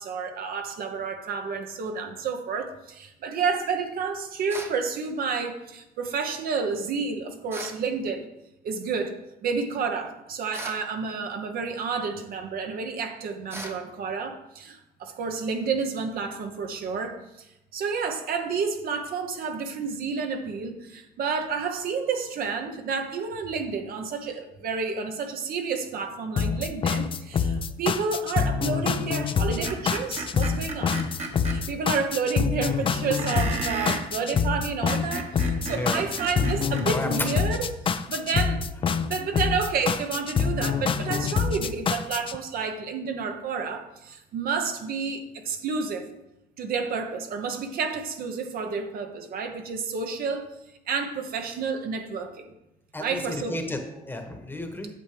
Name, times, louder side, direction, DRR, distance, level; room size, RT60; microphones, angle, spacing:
voice 1, 0.0-8.3 8.6-9.2 9.4-17.5 17.7-31.0 31.4-38.6 39.0-46.1 46.6-50.5 50.9-52.5 53.0-53.6, right 5 dB, 60° right, 5 dB, 0.9 m, -30 dB
sound 1, 4.5-4.8 7.5-7.8 10.5-10.9 13.5-13.8, right 1 dB, 15° right, 0.9 m, -38 dB
sound 2, 26.4-42.4, left 6 dB, 30° left, 0.4 m, -26 dB
Screech, 29.6-31.6 33.2-34.1 34.7-36.9, right 3 dB, 40° right, 1.2 m, -33 dB
voice 2, 35.6-36.0 36.9-37.1 41.1-41.3 52.9-54.9, left 1 dB, 10° left, 4 dB, 1.1 m, -33 dB
8.7 x 6.9 x 3.3 m, 0.90 s
cardioid pair, 110°, 17 cm